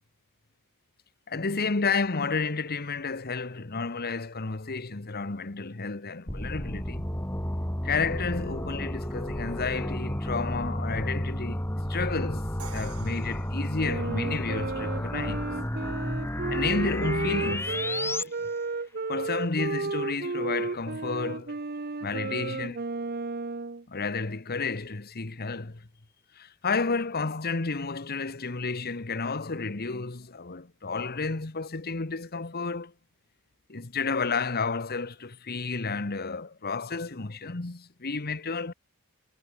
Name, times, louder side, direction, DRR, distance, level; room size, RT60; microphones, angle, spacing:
voice 1, 1.3-7.1 7.8-15.5 16.5-18.3 19.1-21.6 22.0-22.9 23.9-25.9 26.3-32.9 33.7-38.7, left 4 dB, 45° left, 1.2 m, -31 dB
sound 1, 6.3-18.2, left 1 dB, 10° left, 2.4 m, -32 dB
Crash cymbal, 12.6-14.5, right 6 dB, 75° right, 3.6 m, -47 dB
Wind instrument woodwind instrument, 13.8-23.8, right 3 dB, 45° right, 0.9 m, -33 dB
head